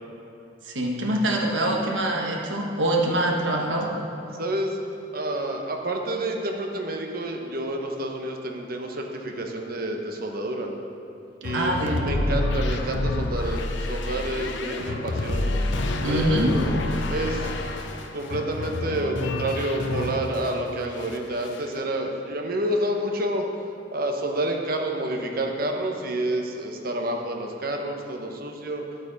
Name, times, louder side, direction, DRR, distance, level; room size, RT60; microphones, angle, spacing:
voice 1, 0.6-3.9 11.5-12.1 16.0-16.5, right 1 dB, 90° right, 0 dB, 1.4 m, -24 dB
voice 2, 4.3-4.8 5.1-10.7 11.4-15.5 16.1-16.8 17.1-17.5 18.1-23.4 23.9-28.8, right 1 dB, 55° right, 2 dB, 1.1 m, -29 dB
sound 1, 11.4-20.6 20.9-21.7, left 2 dB, 75° left, 0.7 m, -28 dB
11.0 x 8.6 x 4.1 m, 2.9 s
head